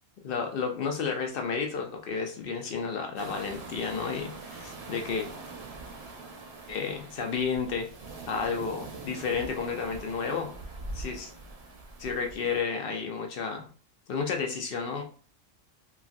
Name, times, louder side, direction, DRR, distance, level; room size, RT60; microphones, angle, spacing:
voice 1, 0.2-5.3 6.7-7.9 8.3-10.5 10.9-11.3 12.0-13.7 14.1-15.0, left 5 dB, 65° left, 3 dB, 0.6 m, -31 dB
sound 1, 3.2-12.6, right 3 dB, 60° right, 0.8 m, -43 dB
3.1 x 2.4 x 2.5 m, 0.40 s
omnidirectional pair, 1.3 m